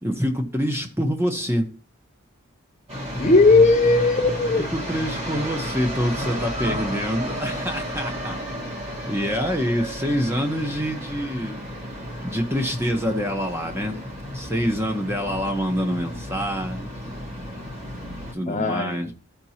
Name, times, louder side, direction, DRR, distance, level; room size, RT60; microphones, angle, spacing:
voice 1, 0.0-1.7 4.6-8.4 9.1-11.6 12.2-16.9 18.3-19.1, equal, 10° right, 1.1 m, -26 dB
sound 1, 2.9-18.3, equal, 30° right, 1.6 m, -32 dB
voice 2, 3.2-4.7 18.5-19.1, left 3 dB, 35° left, 0.5 m, -17 dB
14.0 x 5.3 x 2.9 m
head